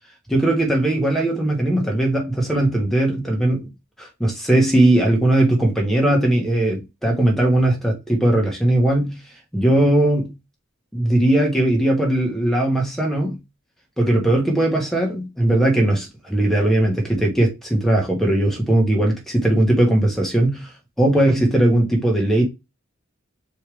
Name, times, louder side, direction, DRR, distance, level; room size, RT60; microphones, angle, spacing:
voice 1, 0.3-3.7 4.0-9.2 9.5-10.3 10.9-13.3 14.0-20.7 21.0-22.4, right 1 dB, ahead, 1.5 m, -19 dB
4.6 x 3.3 x 3.4 m
head